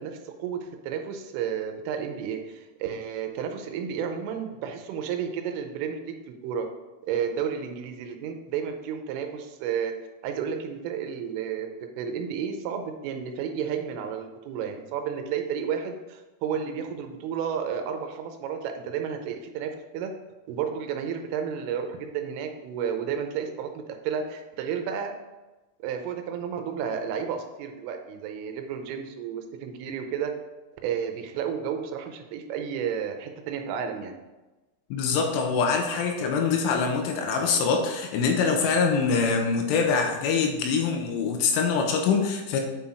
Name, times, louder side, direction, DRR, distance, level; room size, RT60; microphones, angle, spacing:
voice 1, 0.0-6.0 6.4-6.7 7.1-9.9 10.2-11.7 12.0-20.1 20.5-25.1 25.8-30.3 30.8-34.1, right 7 dB, 85° right, 5 dB, 3.2 m, -32 dB
voice 2, 34.9-42.6, left 5 dB, 85° left, 3 dB, 3.4 m, -24 dB
8.9 x 5.7 x 4.5 m, 1.1 s
omnidirectional pair, 5.9 m